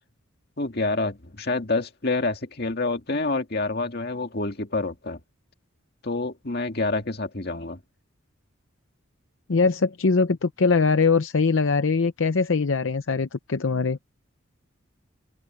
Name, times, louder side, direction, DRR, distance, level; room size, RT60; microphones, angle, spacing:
voice 1, 0.6-5.2 6.0-7.8, left 3 dB, 50° left, 2.0 m, -27 dB
voice 2, 9.5-14.0, left 4 dB, 75° left, 0.7 m, -22 dB
open air
head